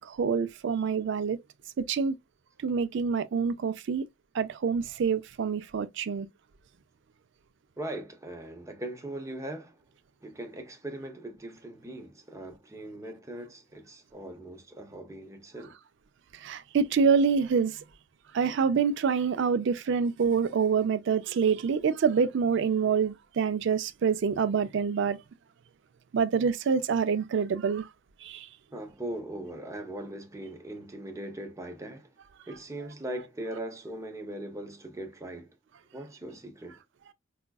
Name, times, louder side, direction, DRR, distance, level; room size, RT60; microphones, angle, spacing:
voice 1, 0.0-1.4 1.8-2.2 2.6-4.0 4.3-6.3 16.4-17.7 18.3-25.2 26.1-27.9 28.2-28.5, right 6 dB, 60° right, 0.4 m, -26 dB
voice 2, 7.8-9.8 10.2-15.8 28.7-32.1 32.5-35.5 35.9-36.8, right 1 dB, 15° right, 0.6 m, -40 dB
4.9 x 2.3 x 2.2 m
head